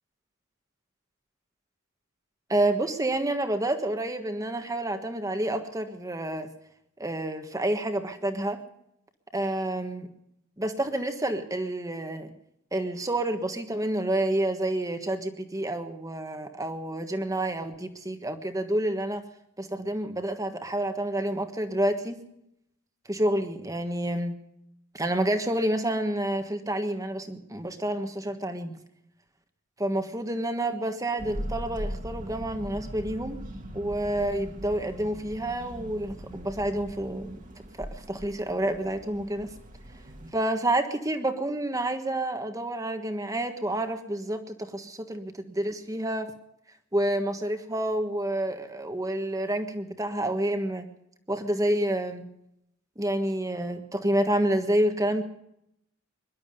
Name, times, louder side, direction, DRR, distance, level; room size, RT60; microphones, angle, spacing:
voice 1, 2.5-6.5 7.0-8.6 9.3-10.1 10.6-12.3 12.7-19.2 19.6-22.2 23.1-24.4 24.9-28.7 29.8-33.4 33.7-37.4 37.8-39.5 40.3-46.3 46.9-50.9 51.3-52.3 53.0-55.2, right 1 dB, 15° right, 7 dB, 1.4 m, -29 dB
sound 1, 31.2-40.3, equal, 40° right, 1.9 m, -40 dB
23.5 x 12.0 x 5.2 m, 0.80 s
head